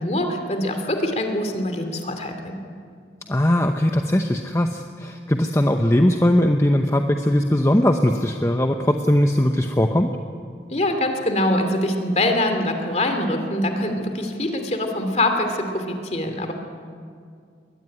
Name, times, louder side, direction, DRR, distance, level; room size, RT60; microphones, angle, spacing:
voice 1, 0.0-2.6 10.7-16.5, left 1 dB, 40° left, 5 dB, 2.7 m, -24 dB
voice 2, 3.3-10.1, left 1 dB, 15° left, 4 dB, 0.8 m, -19 dB
22.0 x 17.5 x 9.8 m, 2.2 s
head